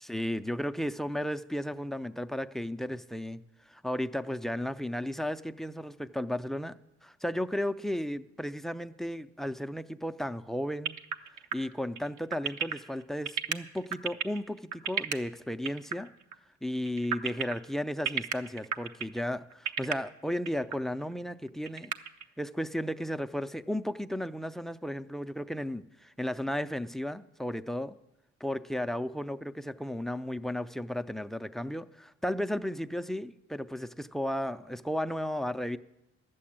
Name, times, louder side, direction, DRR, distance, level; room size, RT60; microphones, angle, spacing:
voice 1, 0.0-3.4 3.7-6.7 7.0-11.0 11.5-16.1 16.6-21.9 22.4-27.9 28.4-35.8, equal, ahead, 13 dB, 0.3 m, -34 dB
sound 1, 10.9-15.2 15.7-16.3 16.8-17.6 18.1-19.2 19.5-19.9 20.5-20.7 21.1-21.2 21.5-22.2, right 8 dB, 75° right, 0.8 m, -32 dB
11.5 x 7.7 x 8.6 m, 0.91 s
cardioid pair, 90°, 30 cm